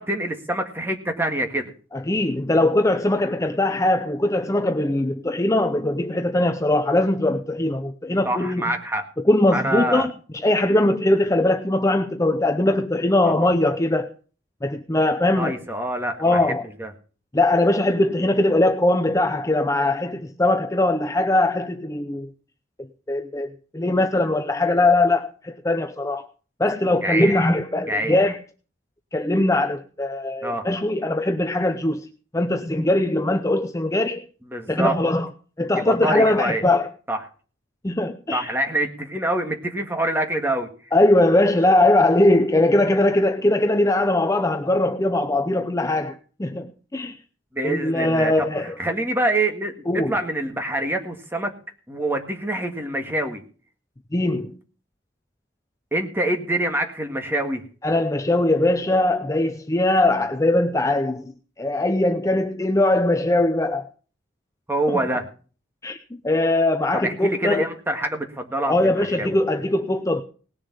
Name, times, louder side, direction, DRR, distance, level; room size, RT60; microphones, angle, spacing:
voice 1, 0.1-1.7 8.3-9.0 9.5-10.1 13.2-13.5 15.4-16.4 16.8-16.9 27.0-27.3 27.9-28.2 30.4-30.6 34.5-34.9 35.8-36.6 37.1-37.2 38.3-40.7 47.5-51.5 51.9-53.4 55.9-57.6 64.7-65.3 66.9-69.4, right 1 dB, 10° right, 1.8 m, -25 dB
voice 2, 1.9-8.7 9.2-10.1 10.4-14.1 14.6-15.6 16.2-16.6 17.3-22.3 23.1-26.3 26.6-28.4 29.1-32.1 32.3-34.2 34.7-35.3 35.6-36.9 37.8-38.5 40.9-47.2 47.6-48.8 49.9-50.2 54.1-54.6 57.8-61.3 61.6-63.9 64.9-65.0 65.8-66.0 66.2-67.7 68.7-70.2, left 1 dB, 15° left, 0.6 m, -21 dB
19.0 x 6.8 x 5.4 m
head